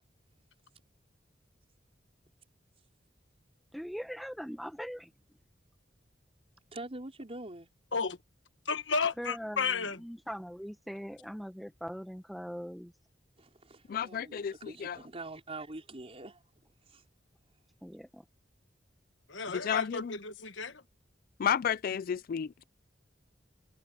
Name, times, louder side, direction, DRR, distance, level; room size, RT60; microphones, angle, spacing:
voice 1, 3.7-5.1 9.2-12.9 17.8-18.2, equal, ahead, 1.2 m, -41 dB
voice 2, 6.7-7.7 13.4-16.4 16.9-17.0, right 2 dB, 35° right, 4.5 m, -44 dB
voice 3, 8.6-10.0 19.3-20.8, left 5 dB, 90° left, 1.4 m, -32 dB
voice 4, 13.9-15.0 19.5-20.1 21.4-22.5, left 8 dB, 50° left, 0.3 m, -32 dB
head